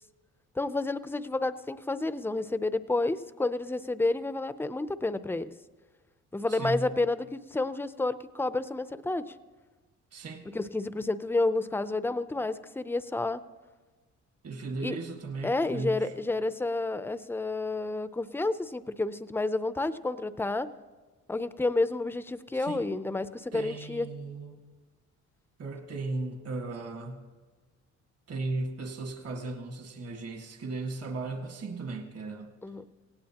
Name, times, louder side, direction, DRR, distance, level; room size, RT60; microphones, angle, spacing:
voice 1, 0.6-5.5 6.3-9.3 10.5-13.4 14.8-15.0 15.4-20.7 21.3-24.1 32.6-32.9, left 2 dB, 5° left, 13 dB, 0.5 m, -30 dB
voice 2, 6.5-6.9 10.1-10.5 14.4-16.1 22.5-22.9 23.5-24.6 25.6-27.3 28.3-32.5, right 3 dB, 55° right, 3 dB, 1.8 m, -36 dB
17.5 x 17.0 x 2.9 m, 1.3 s
cardioid pair, 90°, 30 cm